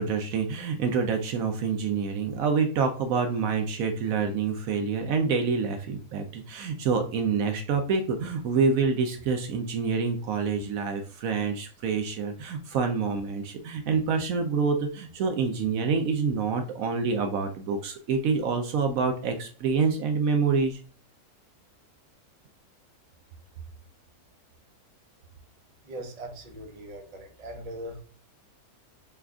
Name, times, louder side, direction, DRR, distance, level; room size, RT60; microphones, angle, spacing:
voice 1, 0.0-20.8, right 5 dB, 70° right, 5 dB, 0.9 m, -27 dB
voice 2, 25.9-28.0, right 1 dB, 40° right, 1 dB, 0.6 m, -40 dB
3.3 x 2.3 x 3.5 m, 0.40 s
omnidirectional pair, 1.6 m